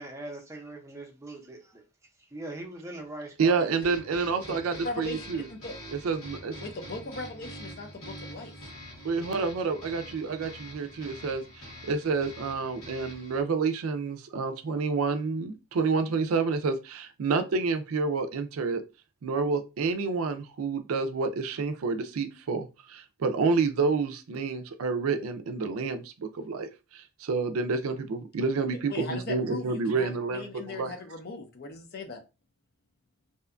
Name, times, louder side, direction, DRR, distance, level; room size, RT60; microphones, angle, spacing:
voice 1, 0.0-1.8 2.3-3.6, right 2 dB, 15° right, 0.5 m, -41 dB
voice 2, 3.4-5.5 5.9-6.5 9.0-18.8 19.2-30.9, right 4 dB, 80° right, 0.4 m, -29 dB
sound 1, 3.8-13.4, equal, 75° left, 1.3 m, -45 dB
voice 3, 4.8-5.7 6.6-8.5 28.9-32.2, left 2 dB, 50° left, 0.5 m, -39 dB
2.7 x 2.2 x 2.4 m
head